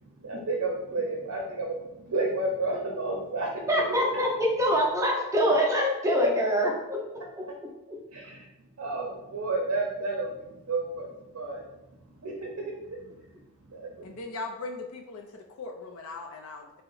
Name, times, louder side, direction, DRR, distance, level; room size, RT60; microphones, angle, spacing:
voice 1, 0.2-3.7 8.1-8.5 8.8-11.1 11.3-11.7 12.2-13.0 13.7-14.1, right 2 dB, 80° right, -2 dB, 0.5 m, -31 dB
voice 2, 3.7-7.2, equal, 15° right, -1 dB, 0.5 m, -24 dB
voice 3, 14.0-16.8, left 3 dB, 65° left, 3 dB, 0.4 m, -39 dB
2.8 x 2.0 x 3.8 m, 0.94 s
head